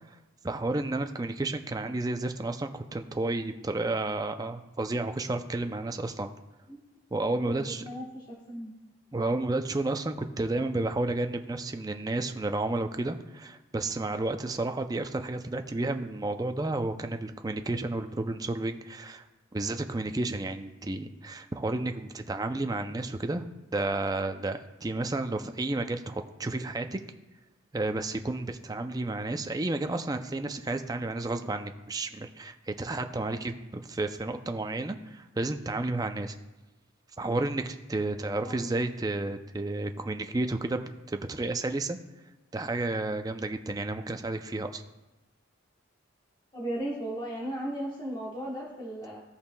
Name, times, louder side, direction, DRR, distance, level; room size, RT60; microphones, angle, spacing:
voice 1, 0.4-6.3 7.1-7.8 9.1-19.2 19.5-23.5 23.7-27.0 27.7-36.4 37.2-40.8 41.1-42.0 42.5-44.8, right 2 dB, 20° right, 7 dB, 0.4 m, -31 dB
voice 2, 7.4-8.7 25.4-25.5 38.4-38.7 46.5-49.2, right 1 dB, 20° left, -5 dB, 1.2 m, -36 dB
15.5 x 5.6 x 2.2 m, 1.1 s
head